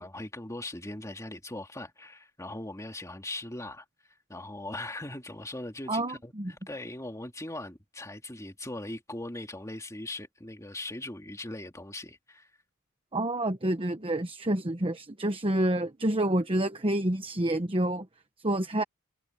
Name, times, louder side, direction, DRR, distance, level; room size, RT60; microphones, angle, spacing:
voice 1, 0.0-3.8 4.3-12.5, left 1 dB, 15° left, 2.5 m, -40 dB
voice 2, 5.9-6.5 13.1-18.1 18.4-18.8, right 1 dB, 25° right, 1.1 m, -28 dB
head